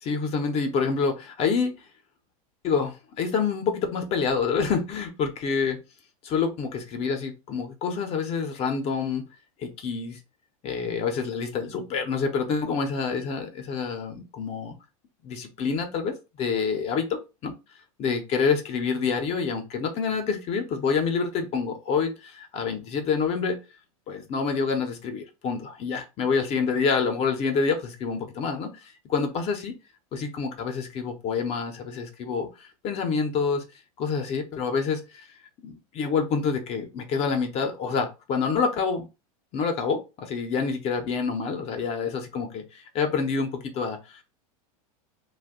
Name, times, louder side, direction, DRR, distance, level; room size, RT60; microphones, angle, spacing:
voice 1, 0.0-1.9 2.6-5.8 6.2-9.3 9.6-10.2 10.6-14.7 15.2-17.5 18.0-23.6 24.1-29.8 30.1-33.6 34.0-35.3 35.6-39.1 39.5-44.2, left 5 dB, 35° left, 0.6 m, -27 dB
2.5 x 2.2 x 3.6 m
supercardioid pair, 135°, 19 cm